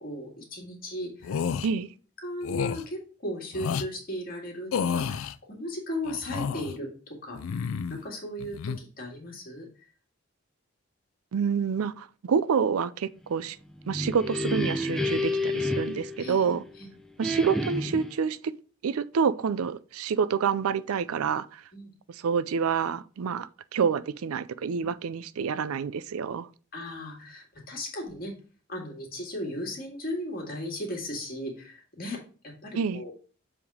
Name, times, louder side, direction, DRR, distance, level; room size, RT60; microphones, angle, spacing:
voice 1, 0.0-1.4 1.7-1.8 2.2-9.7 16.2-16.9 21.7-21.9 26.7-28.3 28.7-32.2 32.4-33.1, left 1 dB, 45° left, 2.0 m, -36 dB
sound 1, 1.2-1.7 2.4-2.8 3.5-3.9 4.7-5.3 6.0-6.8 7.3-8.0 8.4-8.8, left 6 dB, 75° left, 0.4 m, -30 dB
voice 2, 11.3-13.6 13.9-16.6 17.2-18.5 18.8-21.6 22.1-26.5 32.7-33.0, right 6 dB, 90° right, 0.4 m, -28 dB
sound 2, 13.7-16.7 17.2-18.2, left 1 dB, ahead, 0.5 m, -30 dB
7.0 x 3.6 x 4.7 m
head